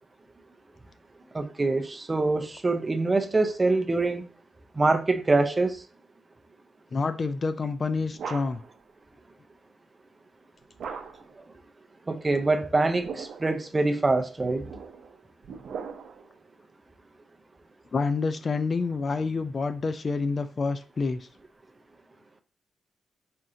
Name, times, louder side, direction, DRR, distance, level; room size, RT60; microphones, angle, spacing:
voice 1, 1.3-4.2 4.7-5.8 12.1-14.7, right 3 dB, 20° right, 0.5 m, -24 dB
voice 2, 6.9-8.6 17.9-21.3, left 4 dB, 35° left, 0.3 m, -28 dB
sound 1, 7.6-8.8 10.8-11.4 12.8-13.6 14.4-16.3, right 6 dB, 70° right, 0.5 m, -40 dB
4.3 x 2.6 x 3.7 m
wide cardioid pair, 130°, 0 cm